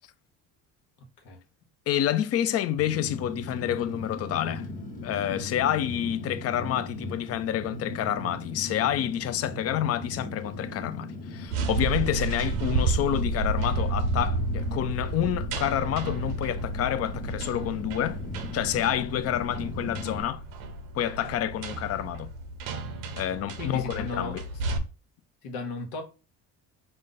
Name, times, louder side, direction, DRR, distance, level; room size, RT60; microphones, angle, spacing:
voice 1, 1.9-4.6 5.0-18.2 18.5-20.4 21.0-22.3 23.2-24.4, left 11 dB, 40° left, 0.5 m, -28 dB
Fire, 2.8-20.2, left 2 dB, 20° left, 1.2 m, -38 dB
sound 1, 11.4-24.8, right 2 dB, 85° right, 0.8 m, -31 dB
voice 2, 23.6-24.6 25.4-26.0, left 3 dB, 85° left, 1.1 m, -35 dB
5.0 x 2.2 x 3.9 m
supercardioid pair, 95°, 38 cm